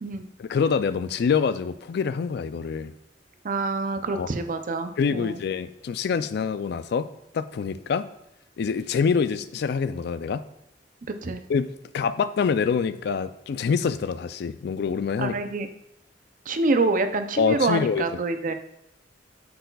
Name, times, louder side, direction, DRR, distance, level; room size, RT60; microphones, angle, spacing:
voice 1, 0.4-2.9 4.1-4.4 5.0-7.1 7.3-8.1 8.6-10.4 11.5-15.4 17.4-18.0, left 6 dB, 60° left, 14 dB, 0.3 m, -25 dB
voice 2, 3.4-5.4 11.2-11.4 15.2-15.7 16.5-18.5, right 3 dB, 45° right, 9 dB, 0.5 m, -26 dB
7.7 x 6.8 x 2.3 m, 0.85 s
head